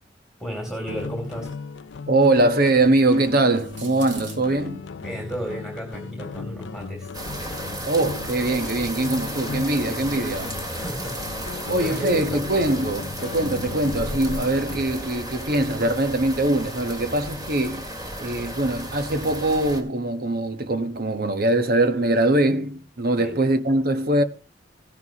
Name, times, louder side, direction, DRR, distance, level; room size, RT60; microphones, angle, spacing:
voice 1, 0.4-1.5 5.0-7.1 10.7-11.2 11.5-12.4 23.2-23.3, right 1 dB, 5° right, 3.0 m, -33 dB
sound 1, 0.9-15.0, left 5 dB, 85° left, 0.5 m, -37 dB
voice 2, 2.1-4.9 7.9-10.5 11.7-17.9 18.2-24.2, right 2 dB, 55° right, 1.3 m, -22 dB
sound 2, 2.4-4.4 5.4-5.7 8.2-8.5 8.8-9.6 9.9-10.2 11.6-12.6, right 4 dB, 85° right, 3.3 m, -45 dB
sound 3, 7.1-19.8, right 1 dB, 20° right, 2.4 m, -34 dB
16.5 x 10.5 x 3.0 m
head